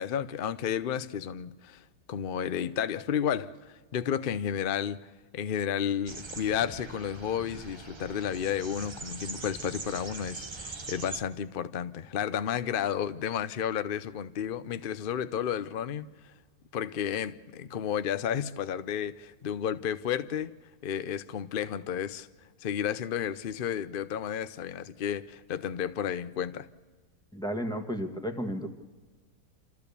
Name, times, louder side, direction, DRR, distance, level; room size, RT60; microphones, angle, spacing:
voice 1, 0.0-16.1 16.7-20.5 20.8-22.3 22.6-26.7, left 9 dB, 65° left, 0.5 m, -32 dB
sound 1, 6.1-11.2, right 3 dB, 35° right, 0.4 m, -42 dB
voice 2, 27.3-28.7, equal, 5° left, 1.3 m, -33 dB
28.5 x 14.5 x 6.9 m
omnidirectional pair, 1.9 m